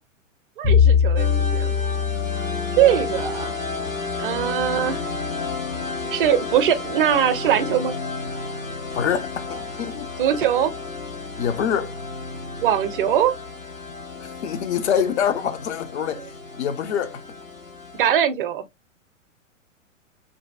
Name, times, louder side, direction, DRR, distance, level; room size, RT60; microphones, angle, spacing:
Bowed string instrument, 0.6-4.8, left 7 dB, 10° left, 0.4 m, -23 dB
voice 1, 0.6-1.8 2.8-3.5 4.2-5.0 6.1-8.0 10.2-10.7 12.6-13.3 16.1-16.2 18.0-18.6, right 10 dB, 45° right, 0.4 m, -21 dB
sound 1, 1.2-18.1, left 3 dB, 85° left, 1.5 m, -32 dB
voice 2, 8.9-10.1 11.4-11.9 14.2-16.3 16.6-17.2, left 8 dB, 60° left, 0.6 m, -25 dB
3.2 x 2.6 x 2.2 m
figure-of-eight pair, 110°, 39 cm